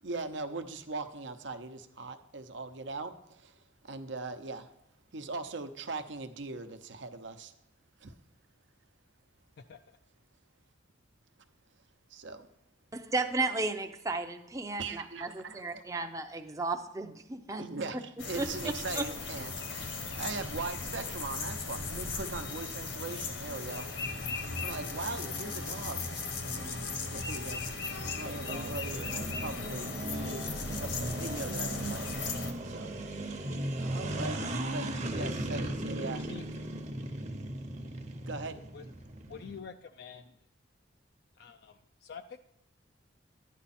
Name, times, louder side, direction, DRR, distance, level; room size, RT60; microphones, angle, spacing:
voice 1, 0.0-4.7 5.1-7.5 8.0-8.2 12.1-12.5 14.8-15.8 17.6-23.9 24.6-26.2 26.6-26.8 27.1-27.8 28.0-32.9 33.8-36.3 38.3-38.6, right 3 dB, 70° right, 9 dB, 0.9 m, -40 dB
voice 2, 12.9-17.6 18.4-18.5 19.0-19.1, right 3 dB, 15° right, 6 dB, 0.6 m, -34 dB
sound 1, 18.2-32.5, left 4 dB, 75° left, 1.4 m, -37 dB
sound 2, 28.2-39.6, right 1 dB, 35° right, 0.9 m, -37 dB
voice 3, 39.3-40.2 41.4-41.7 42.0-42.2, left 6 dB, 55° left, 7 dB, 0.4 m, -45 dB
11.5 x 9.3 x 4.3 m, 0.78 s
head